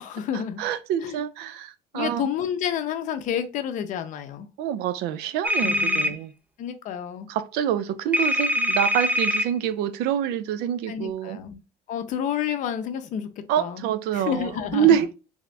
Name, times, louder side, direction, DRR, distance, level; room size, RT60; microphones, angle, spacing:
voice 1, 0.0-0.6 1.0-1.2 1.9-4.5 5.6-6.2 6.6-7.3 10.9-11.6 11.9-13.8 14.1-14.9, left 9 dB, 45° left, 0.5 m, -30 dB
voice 2, 0.6-2.3 4.6-6.3 7.3-11.4 13.5-15.1, right 10 dB, 70° right, 0.4 m, -26 dB
sound 1, 5.4-6.1 8.1-9.5, equal, 10° right, 0.3 m, -23 dB
3.5 x 2.5 x 3.2 m
cardioid pair, 165°, 17 cm